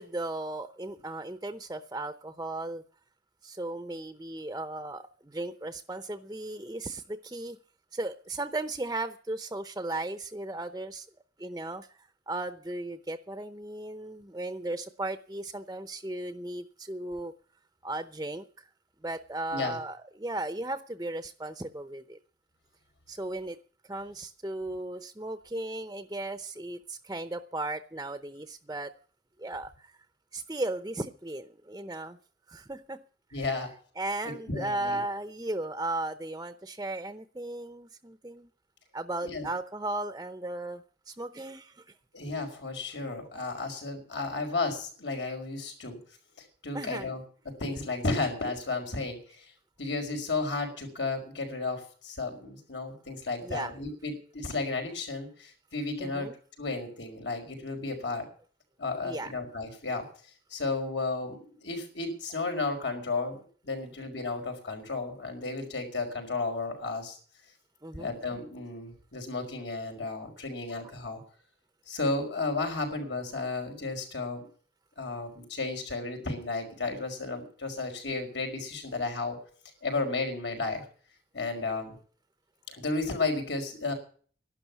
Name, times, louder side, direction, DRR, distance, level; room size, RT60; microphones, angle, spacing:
voice 1, 0.0-2.8 3.4-7.6 7.9-11.1 11.4-11.9 12.3-17.3 17.8-18.7 19.0-22.2 23.1-23.6 23.8-28.9 29.4-29.9 30.3-32.2 32.5-33.0 33.3-33.5 34.0-38.5 38.9-41.8 46.7-47.1 53.4-53.7 56.0-56.3 59.0-59.3 67.8-68.1, right 2 dB, 20° right, 11 dB, 0.7 m, -36 dB
voice 2, 33.3-33.7 34.5-35.0 39.2-39.5 42.1-46.0 46.4-49.5 49.8-56.3 56.6-58.3 58.8-67.2 67.9-71.2 71.9-74.5 75.0-79.4 79.8-80.8 81.3-82.0 82.7-83.9, left 3 dB, 80° left, 4 dB, 5.4 m, -33 dB
12.0 x 11.5 x 7.1 m, 0.44 s
head